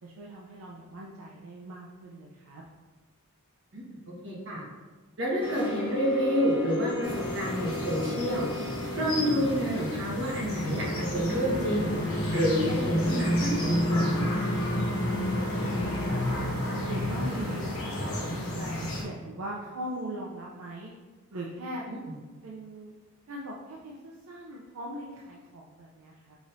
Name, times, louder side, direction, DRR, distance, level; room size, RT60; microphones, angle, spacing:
voice 1, 0.0-2.6 15.5-16.2 16.6-20.9 21.3-21.8 22.4-22.9 23.3-26.4, right 1 dB, 80° right, -3 dB, 0.5 m, -40 dB
voice 2, 4.2-4.6 5.2-8.7 8.9-11.9 12.3-14.5 21.9-22.0, equal, 55° right, -4 dB, 1.3 m, -29 dB
sound 1, 5.4-16.4, left 2 dB, 25° left, 0.7 m, -36 dB
sound 2, 7.0-19.0, equal, 70° left, 1.2 m, -31 dB
5.0 x 3.9 x 2.6 m, 1.3 s
head